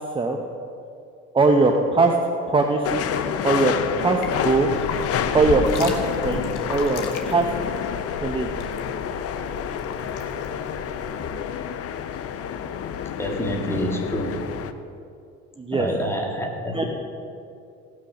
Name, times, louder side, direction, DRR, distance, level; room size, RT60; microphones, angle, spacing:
voice 1, 1.3-2.1 2.5-3.0 3.4-4.7 5.3-6.0 6.2-7.5 8.2-8.5 15.6-15.9 16.7-16.8, right 3 dB, 15° right, 3 dB, 0.8 m, -21 dB
sound 1, 2.8-14.7, left 8 dB, 50° left, 0.7 m, -29 dB
sound 2, 4.1-11.3, left 3 dB, 80° left, 1.5 m, -35 dB
voice 2, 13.2-14.4 15.7-16.8, equal, 10° left, 1 dB, 1.9 m, -27 dB
17.0 x 6.5 x 5.7 m, 2.5 s
cardioid pair, 100°, 30 cm